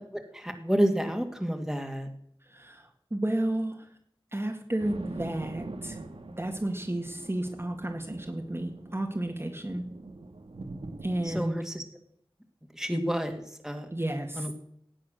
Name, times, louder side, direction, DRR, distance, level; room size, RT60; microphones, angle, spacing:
voice 1, 0.3-2.1 11.3-11.8 12.7-13.9 14.4-14.5, equal, 5° right, 4 dB, 2.2 m, -29 dB
voice 2, 2.4-3.9 4.3-6.0 6.4-9.8 11.0-11.6 13.9-14.5, right 1 dB, 25° right, 2 dB, 1.9 m, -32 dB
sound 1, 4.8-11.5, right 2 dB, 85° right, 1.7 m, -43 dB
17.5 x 8.5 x 6.4 m, 0.67 s
wide cardioid pair, 60°, 9 cm